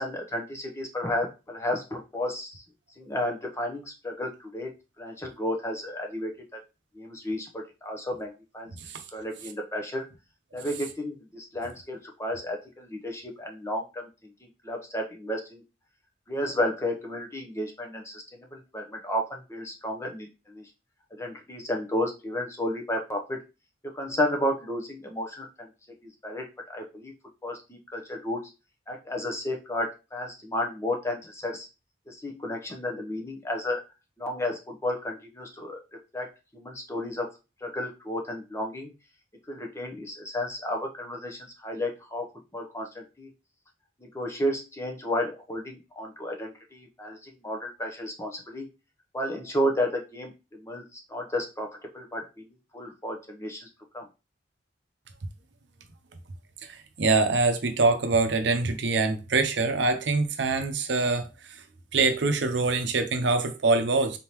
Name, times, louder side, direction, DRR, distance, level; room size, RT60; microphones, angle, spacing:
voice 1, 0.0-2.6 3.0-4.7 5.0-6.6 6.9-8.7 9.1-10.1 10.5-14.1 14.6-15.6 16.3-20.6 21.2-23.4 23.9-25.7 26.0-27.1 27.4-28.4 28.9-31.7 32.1-33.8 34.2-35.8 36.1-36.3 36.5-37.3 37.6-38.9 39.5-42.3 42.5-43.3 44.0-48.7 49.1-53.7 53.9-54.1, left 1 dB, 15° left, 2 dB, 0.8 m, -32 dB
voice 2, 56.6-61.6 61.9-64.2, right 3 dB, 75° right, 8 dB, 0.7 m, -24 dB
4.1 x 3.7 x 2.9 m, 0.28 s
head